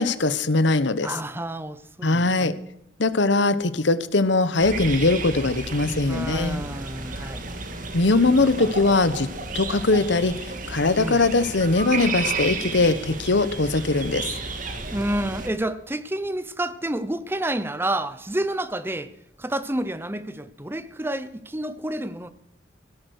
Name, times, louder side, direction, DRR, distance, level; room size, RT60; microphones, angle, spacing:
voice 1, 0.0-1.1 2.0-2.5 3.0-6.6 7.9-9.3 9.5-10.3 10.7-14.3, left 3 dB, 70° left, 1.0 m, -21 dB
voice 2, 1.0-2.5 6.1-7.5 11.0-11.2 14.9-19.1 19.4-22.3, right 1 dB, 10° right, 0.7 m, -29 dB
sound 1, 4.6-15.5, right 3 dB, 45° right, 2.0 m, -32 dB
17.5 x 12.5 x 6.4 m
head